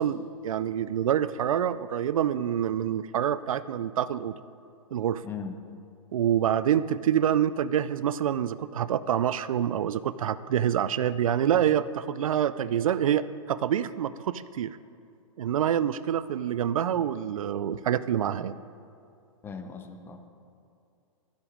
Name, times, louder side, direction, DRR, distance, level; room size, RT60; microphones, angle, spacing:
voice 1, 0.0-4.3 4.9-5.2 6.1-14.8 15.4-18.6, right 10 dB, 75° right, 16 dB, 0.4 m, -26 dB
voice 2, 5.2-5.6 19.4-20.3, left 6 dB, 10° left, 6 dB, 0.7 m, -38 dB
13.0 x 7.4 x 5.0 m, 2.5 s
hypercardioid pair, 140°, 18 cm